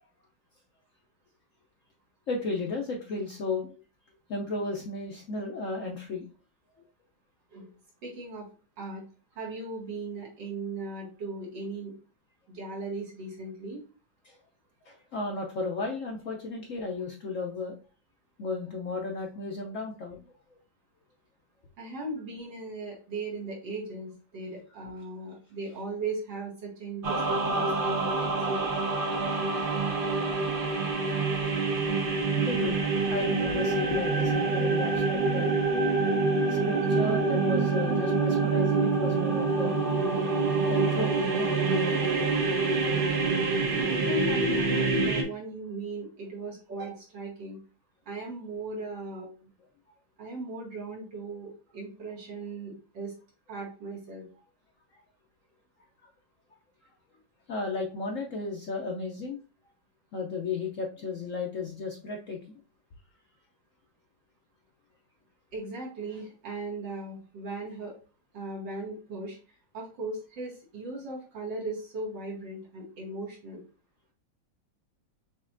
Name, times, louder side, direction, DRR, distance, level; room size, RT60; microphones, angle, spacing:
voice 1, 2.3-3.7 4.3-6.2 14.3-14.4 14.9-17.8 18.4-20.2 32.4-35.5 36.5-39.8 40.7-42.0 42.6-42.7 57.5-59.4 60.1-62.4, left 3 dB, 60° left, 0 dB, 0.9 m, -34 dB
voice 2, 8.0-8.5 8.8-9.0 9.3-11.9 12.5-13.8 21.8-28.9 43.9-47.6 48.1-49.3 50.2-53.1 53.5-54.2 65.5-67.9 68.3-69.4 69.7-73.6, right 3 dB, 75° right, -3 dB, 2.6 m, -38 dB
sound 1, 27.0-45.2, right 3 dB, 45° right, 0.7 m, -26 dB
6.4 x 3.0 x 2.6 m, 0.35 s
omnidirectional pair, 2.0 m